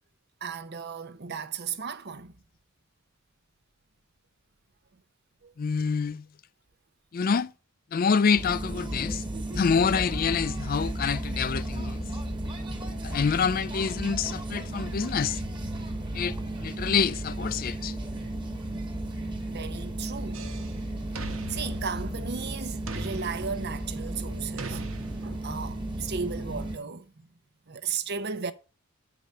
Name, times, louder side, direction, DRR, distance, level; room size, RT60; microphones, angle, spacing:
voice 1, 0.4-2.3 5.4-5.5 19.4-20.4 21.5-24.9 25.2-27.1 27.7-28.5, right 5 dB, 50° right, 0.7 m, -35 dB
voice 2, 5.6-6.2 7.1-7.5 7.9-9.2 9.6-12.0 13.0-15.4 16.1-16.4 16.6-17.9, left 6 dB, 40° left, 0.4 m, -26 dB
sound 1, 8.4-26.8, right 1 dB, 20° right, 1.4 m, -34 dB
sound 2, 20.3-20.8 21.2-22.4 22.9-24.0 24.6-25.6, right 2 dB, 75° right, 1.1 m, -40 dB
8.8 x 4.8 x 6.5 m
head